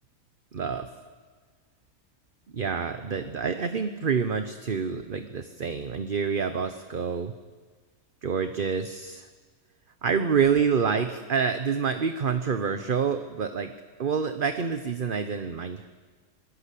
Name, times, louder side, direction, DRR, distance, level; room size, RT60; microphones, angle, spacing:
voice 1, 0.5-0.9 2.5-7.3 8.2-9.3 10.0-13.7 14.0-15.9, right 6 dB, 40° right, 9 dB, 1.0 m, -27 dB
27.0 x 20.0 x 8.5 m, 1.5 s
omnidirectional pair, 1.7 m